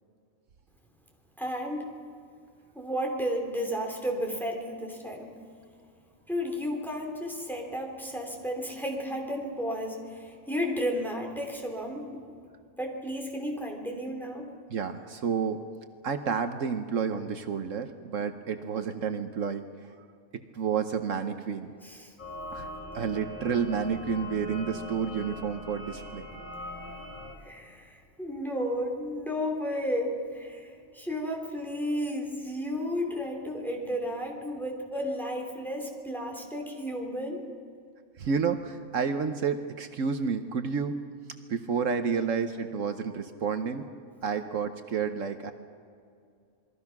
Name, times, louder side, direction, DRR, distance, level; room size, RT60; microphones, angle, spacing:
voice 1, 1.4-1.9 2.7-5.3 6.3-12.4 12.8-14.5 21.8-22.1 27.4-37.4, equal, ahead, 0 dB, 3.3 m, -33 dB
voice 2, 14.7-15.6 16.0-19.6 20.5-21.7 22.5-26.2 38.2-40.9 41.5-43.8 44.2-45.5, right 6 dB, 70° right, 8 dB, 1.3 m, -30 dB
sound 1, 22.2-27.3, left 1 dB, 35° left, 3.7 m, -41 dB
28.0 x 21.5 x 6.0 m, 2.3 s
omnidirectional pair, 1.4 m